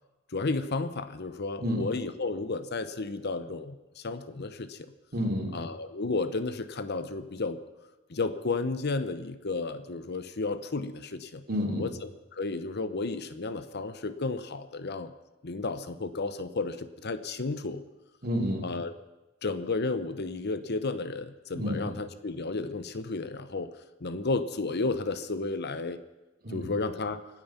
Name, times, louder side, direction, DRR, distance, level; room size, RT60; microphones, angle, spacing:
voice 1, 0.3-4.9 5.5-7.6 8.1-11.4 11.8-15.1 15.4-17.8 18.6-18.9 19.4-23.7 24.0-26.0 26.5-27.2, left 3 dB, 55° left, 12 dB, 0.9 m, -32 dB
voice 2, 5.1-5.5 11.5-11.9 18.2-18.6 21.5-21.9 26.4-26.7, left 1 dB, 50° right, 2 dB, 2.9 m, -29 dB
25.5 x 8.9 x 5.8 m, 1.1 s
head